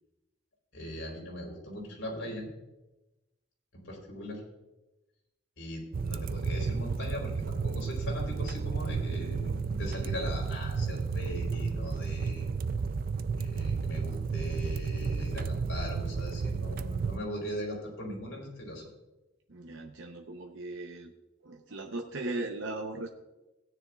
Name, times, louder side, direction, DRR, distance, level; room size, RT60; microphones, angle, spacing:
voice 1, 0.7-2.5 3.7-4.4 5.6-12.5 13.3-18.8, left 1 dB, 80° left, -1 dB, 3.8 m, -39 dB
sound 1, 5.9-17.2, right 5 dB, 45° right, 0.3 m, -32 dB
voice 2, 19.5-21.1 21.4-23.1, right 2 dB, 70° right, 2 dB, 0.8 m, -38 dB
17.0 x 9.8 x 2.4 m, 1.0 s
head